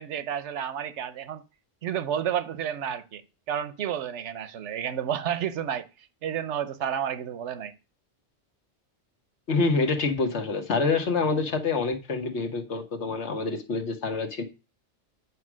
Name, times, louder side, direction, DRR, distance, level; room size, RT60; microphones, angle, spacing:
voice 1, 0.0-1.4 1.8-7.7, right 9 dB, 80° right, 1.0 m, -31 dB
voice 2, 9.5-14.4, left 4 dB, 75° left, 1.5 m, -26 dB
8.5 x 4.7 x 6.1 m
omnidirectional pair, 1.2 m